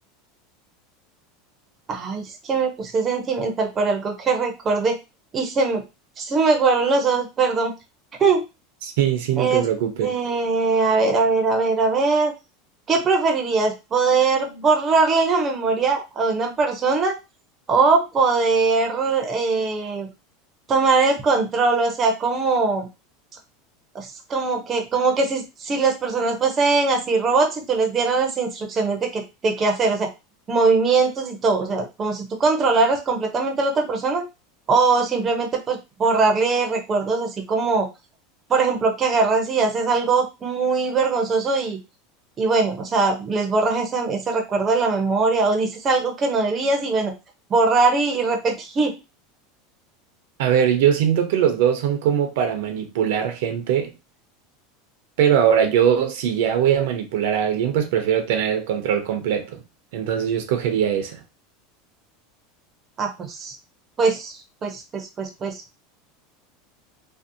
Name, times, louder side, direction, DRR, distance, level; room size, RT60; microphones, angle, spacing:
voice 1, 1.9-5.0 5.3-5.8 6.2-7.7 8.2-8.4 9.4-9.6 10.0-12.3 12.9-17.2 17.7-20.1 20.7-22.9 23.9-30.1 30.5-34.2 34.7-37.9 38.5-41.8 42.4-47.1 47.5-49.0 63.0-63.5 64.0-64.4 64.6-65.6, right 4 dB, 25° right, 0.5 m, -21 dB
voice 2, 8.8-10.1 50.4-53.9 55.2-59.6 59.9-61.2, right 9 dB, 75° right, 0.6 m, -21 dB
2.6 x 2.0 x 2.5 m
supercardioid pair, 150°, 0 cm